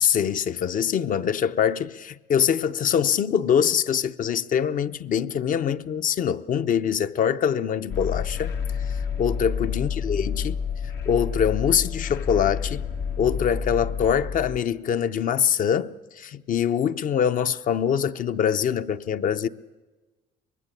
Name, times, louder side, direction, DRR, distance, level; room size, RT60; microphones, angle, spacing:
voice 1, 0.0-8.5 9.2-10.5 11.1-12.9 13.2-19.5, left 8 dB, 50° left, 0.8 m, -24 dB
sound 1, 7.9-14.6, left 6 dB, 85° left, 1.9 m, -29 dB
24.0 x 20.5 x 8.4 m
cardioid pair, 110°, 17 cm